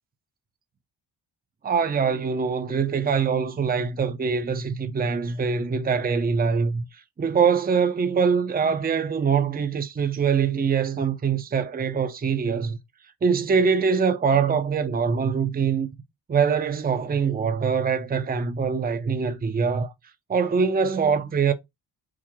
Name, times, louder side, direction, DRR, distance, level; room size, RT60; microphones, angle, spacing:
voice 1, 1.6-6.8 7.2-12.8 13.2-15.9 16.3-19.9 20.3-21.5, right 6 dB, 20° right, 0.6 m, -23 dB
5.9 x 2.0 x 3.0 m
cardioid pair, 75°, 46 cm